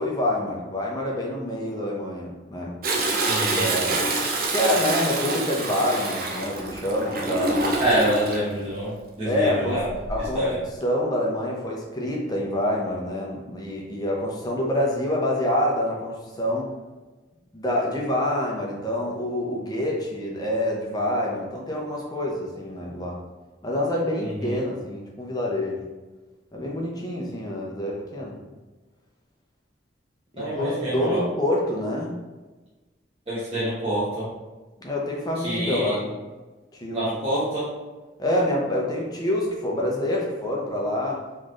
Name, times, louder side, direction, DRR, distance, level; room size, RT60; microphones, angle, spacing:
voice 1, 0.0-2.7 3.5-4.1 4.5-7.6 8.0-8.1 9.2-9.8 10.1-10.4 10.8-16.7 17.5-23.1 23.6-25.8 26.5-28.4 30.3-32.1 34.8-36.1 36.7-37.1 38.2-41.2, left 1 dB, 20° left, -2 dB, 0.6 m, -26 dB
Toilet flush, 2.8-8.4 9.8-10.3 10.8-10.9, right 2 dB, 50° right, 0.5 m, -26 dB
voice 2, 3.2-3.6 7.8-9.9 10.3-10.6 24.2-24.6 30.4-31.2 33.3-34.3 35.4-35.9 36.9-37.7, right 1 dB, 30° right, -11 dB, 1.0 m, -26 dB
3.9 x 3.1 x 2.5 m, 1.2 s
head